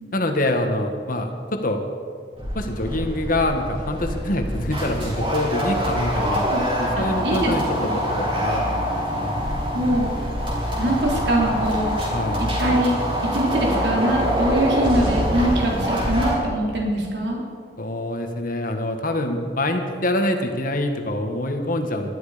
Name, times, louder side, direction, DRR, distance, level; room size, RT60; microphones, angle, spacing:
voice 1, 0.1-1.8 2.5-6.5 6.8-9.5 12.1-12.4 17.8-22.2, left 1 dB, 50° left, 5 dB, 1.7 m, -25 dB
sound 1, 2.4-16.3, equal, 30° right, 4.3 m, -25 dB
voice 2, 7.0-7.5 7.8-7.9 9.7-10.1 10.8-12.0 12.6-13.0 13.3-17.4, right 1 dB, 65° right, -2 dB, 3.8 m, -23 dB
20.0 x 13.0 x 5.1 m, 2.2 s
head